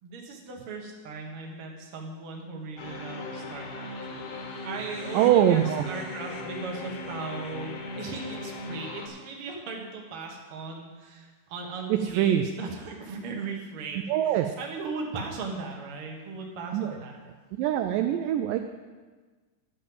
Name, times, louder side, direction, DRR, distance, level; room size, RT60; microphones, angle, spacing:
voice 1, 0.0-3.9 4.2-17.2, right 4 dB, 55° right, 0 dB, 1.7 m, -38 dB
sound 1, 2.8-9.1, left 2 dB, 65° left, 1.9 m, -38 dB
voice 2, 5.1-5.8 12.2-12.4 14.1-14.5 16.7-16.9 17.5-18.6, right 10 dB, 85° right, 6 dB, 1.9 m, -23 dB
11.5 x 5.4 x 7.8 m, 1.4 s
omnidirectional pair, 4.4 m